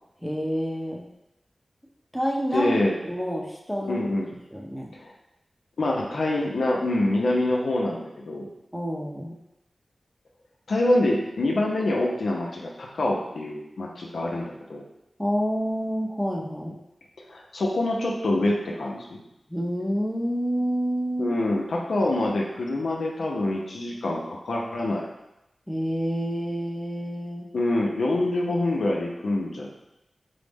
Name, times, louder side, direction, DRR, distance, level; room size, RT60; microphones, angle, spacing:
voice 1, 0.2-1.0 2.1-2.8 3.0-4.0 4.5-4.9 8.7-9.4 15.2-16.8 19.5-21.4 25.7-27.5, equal, ahead, -1 dB, 0.6 m, -28 dB
voice 2, 2.5-3.0 3.9-4.3 4.9-5.1 5.8-8.5 10.7-14.8 17.3-19.2 21.2-25.1 27.5-29.7, left 1 dB, 85° left, -2 dB, 0.5 m, -25 dB
4.0 x 2.0 x 3.4 m, 0.90 s
cardioid pair, 50°, 0 cm